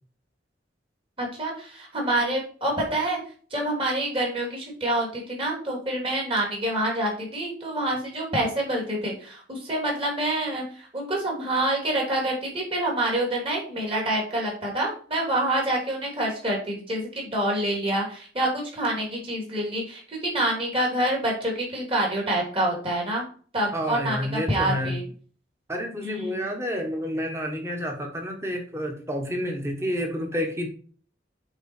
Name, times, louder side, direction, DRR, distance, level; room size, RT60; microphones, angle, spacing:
voice 1, 1.2-3.2 3.5-23.2 23.5-25.1 26.0-26.4, right 1 dB, 30° right, -1 dB, 2.9 m, -27 dB
voice 2, 23.7-25.0 25.7-30.7, equal, 15° right, 2 dB, 1.5 m, -29 dB
8.0 x 4.4 x 4.5 m, 0.43 s
head